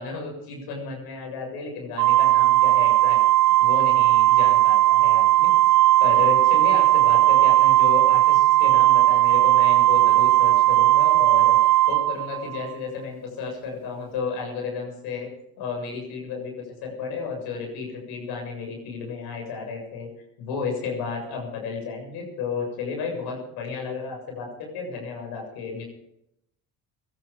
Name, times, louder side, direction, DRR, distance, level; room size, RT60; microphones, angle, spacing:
voice 1, 0.0-3.2 3.6-5.5 6.0-11.6 11.9-15.3 15.6-16.5 16.8-20.1 20.4-24.5 24.7-25.8, left 5 dB, 80° left, 1 dB, 7.2 m, -32 dB
Organ, 2.0-12.7, right 15 dB, 80° right, 0.8 m, -17 dB
18.0 x 13.5 x 5.4 m, 0.80 s
supercardioid pair, 70°, 38 cm